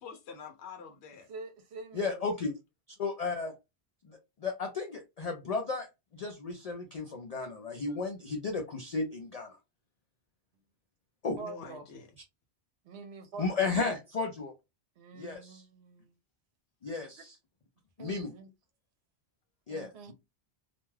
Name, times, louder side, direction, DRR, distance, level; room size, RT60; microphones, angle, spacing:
voice 1, 0.0-1.3 7.9-8.0 11.4-12.1, left 5 dB, 85° left, 0.9 m, -46 dB
voice 2, 1.3-2.3 11.4-11.9 12.8-13.7 15.0-16.2 18.0-18.5 19.7-20.1, right 4 dB, 75° right, 0.9 m, -46 dB
voice 3, 1.9-2.5 3.0-3.5 4.1-5.9 6.1-9.5 11.2-11.4 13.4-14.5 15.1-15.6 16.8-17.3 18.0-18.3 19.7-20.1, left 4 dB, 50° left, 0.5 m, -34 dB
2.5 x 2.2 x 3.1 m
omnidirectional pair, 1.1 m